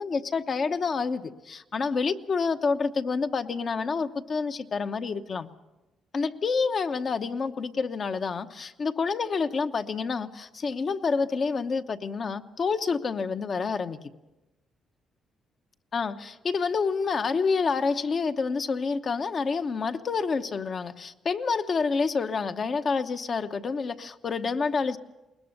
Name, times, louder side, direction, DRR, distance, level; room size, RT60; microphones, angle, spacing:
voice 1, 0.0-5.5 6.1-14.0 15.9-25.0, left 5 dB, 45° left, 8 dB, 1.0 m, -28 dB
20.5 x 20.0 x 6.6 m, 1.0 s
cardioid pair, 90°, 0 cm